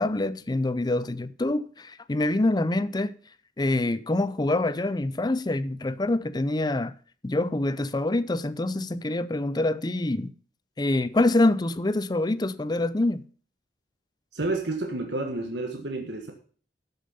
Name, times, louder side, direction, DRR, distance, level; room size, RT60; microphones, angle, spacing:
voice 1, 0.0-3.2 3.6-6.9 7.2-10.3 10.8-13.3, left 2 dB, 25° left, 0.5 m, -25 dB
voice 2, 14.3-16.3, right 2 dB, 65° right, 1.6 m, -30 dB
13.0 x 6.8 x 5.6 m
head